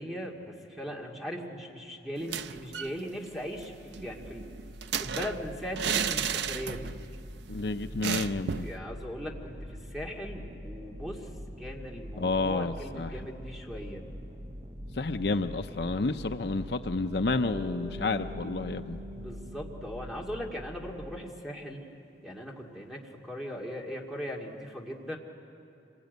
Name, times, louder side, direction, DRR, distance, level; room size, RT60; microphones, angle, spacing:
voice 1, 0.0-4.4 5.0-6.9 8.5-11.3 11.6-14.1 19.1-21.9 22.2-25.2, equal, ahead, -1 dB, 2.2 m, -39 dB
sound 1, 2.2-3.0 3.3-3.4 3.6-7.1 7.4-7.5 8.0-8.8, right 7 dB, 70° right, 0.5 m, -33 dB
sound 2, 3.3-21.2, equal, 30° right, 1.0 m, -44 dB
voice 2, 7.5-8.7 12.2-13.1 15.0-19.0, left 3 dB, 60° left, 8 dB, 0.7 m, -30 dB
Bass guitar, 17.3-21.4, left 1 dB, 30° left, 6.0 m, -45 dB
26.0 x 21.0 x 9.3 m, 2.8 s
head